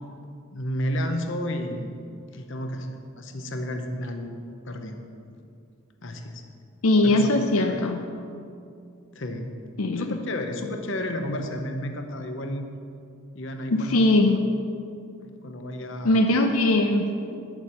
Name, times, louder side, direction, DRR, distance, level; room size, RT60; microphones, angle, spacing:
voice 1, 0.5-1.9 2.3-2.9 3.2-4.4 4.6-5.0 6.0-6.4 7.0-7.3 7.6-7.8 9.1-9.5 10.0-12.7 13.3-14.1 15.2-16.3, left 1 dB, 60° left, 5 dB, 0.8 m, -31 dB
voice 2, 6.8-8.0 9.8-10.1 13.7-14.5 16.0-17.4, left 1 dB, 80° left, 4 dB, 0.6 m, -21 dB
9.6 x 7.1 x 5.7 m, 2.4 s
head